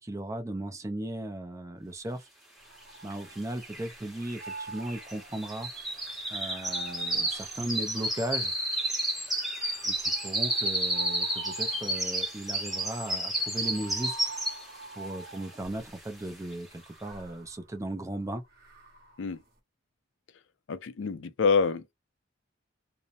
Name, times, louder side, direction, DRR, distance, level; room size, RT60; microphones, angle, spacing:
voice 1, 0.0-2.3 3.0-5.7 6.3-8.5 9.8-14.3 15.0-18.4, right 1 dB, 15° right, 0.4 m, -36 dB
sound 1, 2.6-3.8 4.2-8.6 9.3-15.9 16.7-19.3, right 3 dB, 50° right, 0.9 m, -46 dB
sound 2, 3.1-3.2 3.4-14.8 15.2-15.5 16.0-16.1, right 1 dB, ahead, 0.9 m, -31 dB
voice 2, 20.7-21.9, left 5 dB, 75° left, 0.4 m, -26 dB
2.7 x 2.0 x 2.6 m
head